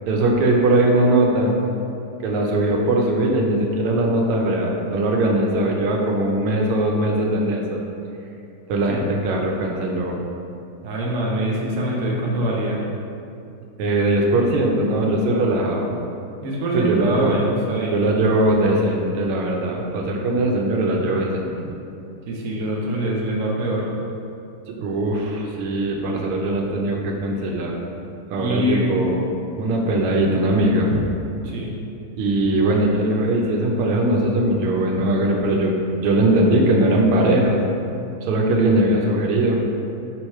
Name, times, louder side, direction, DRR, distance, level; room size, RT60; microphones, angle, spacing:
voice 1, 0.1-1.5 2.2-7.8 8.7-10.2 13.8-15.9 16.7-17.4 17.9-21.5 24.7-27.7 28.3-29.2 29.6-31.0 32.2-37.6 38.2-39.6, right 1 dB, 85° right, 0 dB, 1.6 m, -20 dB
voice 2, 10.8-12.8 16.4-18.0 22.3-23.9 28.4-28.9 31.4-31.7, right 1 dB, 55° right, -3 dB, 0.9 m, -24 dB
5.0 x 4.3 x 4.7 m, 2.6 s
omnidirectional pair, 2.4 m